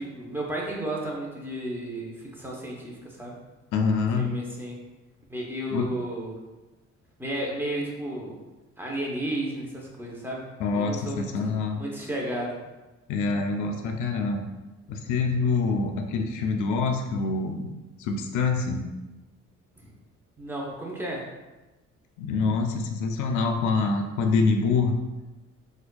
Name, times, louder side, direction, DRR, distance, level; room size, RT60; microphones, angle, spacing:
voice 1, 0.0-3.3 4.2-4.8 5.3-6.4 7.2-8.4 8.8-12.6 19.7-19.9 20.4-21.2, right 1 dB, 5° right, -3 dB, 0.8 m, -33 dB
voice 2, 3.7-4.3 5.7-5.9 10.6-11.8 13.1-14.4 14.9-17.7 18.0-18.9 22.2-24.9, left 4 dB, 80° left, 4 dB, 0.4 m, -25 dB
4.1 x 2.5 x 2.3 m, 1.1 s
cardioid pair, 90°, 30 cm